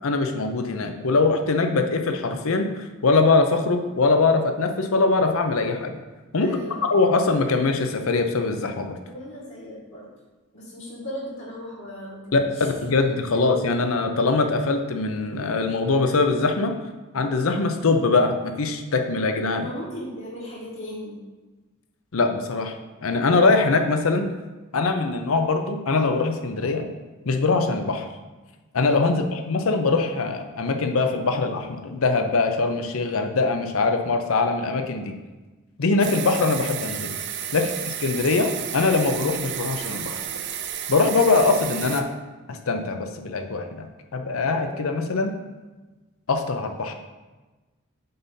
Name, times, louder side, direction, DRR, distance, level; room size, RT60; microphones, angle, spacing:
voice 1, 0.0-6.0 6.3-6.5 6.9-8.9 12.3-16.7 17.1-19.6 22.1-22.7 23.0-24.3 24.7-26.9 27.3-28.1 28.7-35.1 35.8-37.1 37.5-40.2 40.9-42.1 42.5-43.9 44.1-45.3 46.3-46.9, left 3 dB, 80° left, 5 dB, 0.6 m, -22 dB
voice 2, 6.4-6.9 9.0-10.1 10.5-12.7 19.5-21.2 29.1-29.4 37.5-37.8, equal, 65° left, -5 dB, 2.0 m, -37 dB
sound 1, 36.0-42.0, right 9 dB, 60° right, 0.5 m, -32 dB
7.6 x 2.7 x 5.6 m, 1.2 s
head